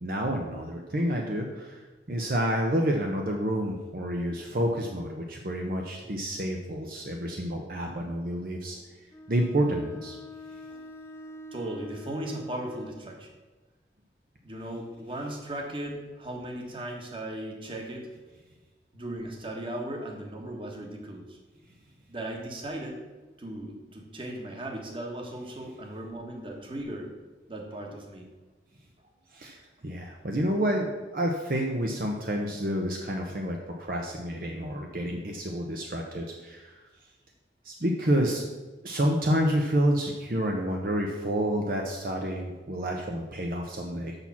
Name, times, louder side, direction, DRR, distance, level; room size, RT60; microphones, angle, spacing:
voice 1, 0.0-8.8 9.3-10.2 29.3-36.8 37.6-38.4 38.8-44.2, equal, 55° right, 1 dB, 0.8 m, -29 dB
Bowed string instrument, 9.1-13.1, left 1 dB, 15° left, 0.5 m, -45 dB
voice 2, 11.5-13.3 14.4-18.1 18.9-21.4 22.1-23.0 23.4-27.1 27.5-28.2 30.4-30.5 34.9-35.0 35.4-35.6, right 1 dB, 30° right, 1 dB, 1.4 m, -37 dB
6.7 x 5.9 x 7.2 m, 1.2 s
head